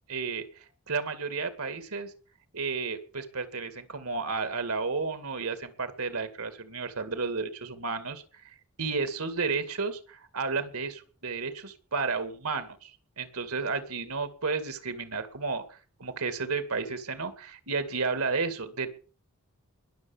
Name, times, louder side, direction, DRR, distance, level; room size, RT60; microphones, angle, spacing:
voice 1, 0.1-2.1 2.5-12.9 13.2-18.9, right 4 dB, 80° right, 10 dB, 2.2 m, -32 dB
21.0 x 7.1 x 7.2 m, 0.40 s
head